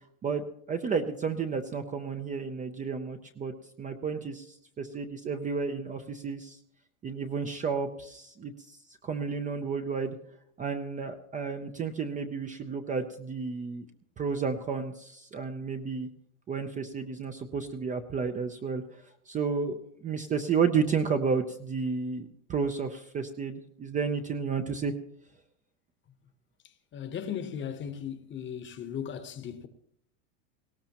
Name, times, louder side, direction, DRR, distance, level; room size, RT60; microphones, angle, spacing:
voice 1, 0.2-6.6 7.0-10.2 10.6-13.9 14.2-16.1 16.5-18.8 19.3-24.9, right 5 dB, 20° right, 0.5 m, -32 dB
voice 2, 26.9-29.7, left 8 dB, 25° left, 1.0 m, -37 dB
19.0 x 16.5 x 2.9 m
supercardioid pair, 130°, 44 cm